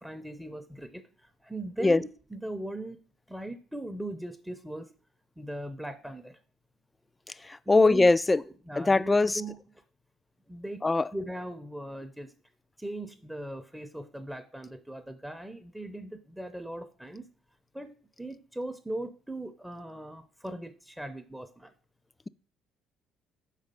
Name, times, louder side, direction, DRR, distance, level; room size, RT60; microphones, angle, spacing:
voice 1, 0.0-1.0 1.4-3.0 3.3-4.9 5.4-6.4 7.7-8.1 8.7-9.6 10.5-10.8 11.1-12.3 12.8-17.3 17.7-21.7, right 1 dB, 5° right, 0.6 m, -39 dB
voice 2, 7.4-8.4 8.8-9.4 10.8-11.1, left 3 dB, 20° left, 0.3 m, -22 dB
4.9 x 4.1 x 5.4 m
hypercardioid pair, 60°, 0 cm